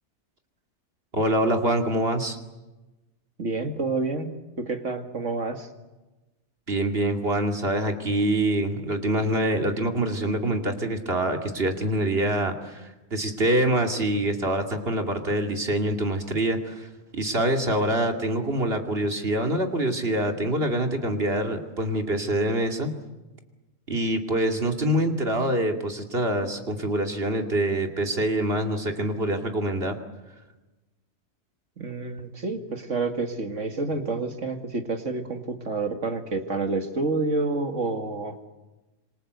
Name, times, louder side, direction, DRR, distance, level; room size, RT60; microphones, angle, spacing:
voice 1, 1.1-2.4 6.7-16.9 17.1-22.9 23.9-29.9, right 1 dB, 45° right, 4 dB, 2.7 m, -25 dB
voice 2, 3.4-4.3 4.6-5.7 31.8-38.5, right 3 dB, 65° right, 6 dB, 2.4 m, -29 dB
26.5 x 26.0 x 8.0 m, 1.1 s
omnidirectional pair, 1.4 m